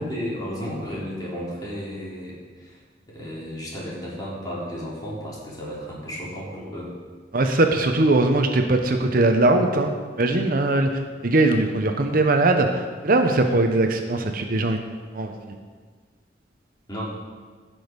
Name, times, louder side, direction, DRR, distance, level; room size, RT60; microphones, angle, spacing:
voice 1, 0.0-2.8 3.1-6.9 16.9-17.0, equal, 20° left, -6 dB, 3.5 m, -33 dB
voice 2, 7.3-9.9 10.2-10.9 11.2-14.9 15.1-15.3, right 2 dB, 50° right, 5 dB, 0.8 m, -20 dB
16.0 x 6.3 x 5.2 m, 1.5 s
head